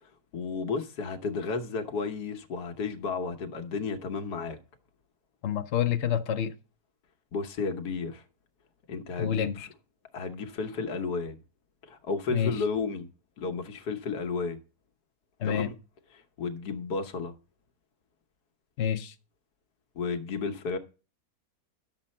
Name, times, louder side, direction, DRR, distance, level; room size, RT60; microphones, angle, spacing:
voice 1, 0.0-4.6 7.3-8.2 8.9-9.7 10.1-11.4 11.8-13.1 13.4-14.6 15.4-15.7 16.1-17.3 19.9-20.8, left 4 dB, 85° left, 1.6 m, -33 dB
voice 2, 5.4-6.5 9.2-9.7 12.3-12.5 15.4-15.7 18.8-19.1, left 9 dB, 55° left, 0.9 m, -28 dB
11.0 x 7.3 x 4.3 m
omnidirectional pair, 1.7 m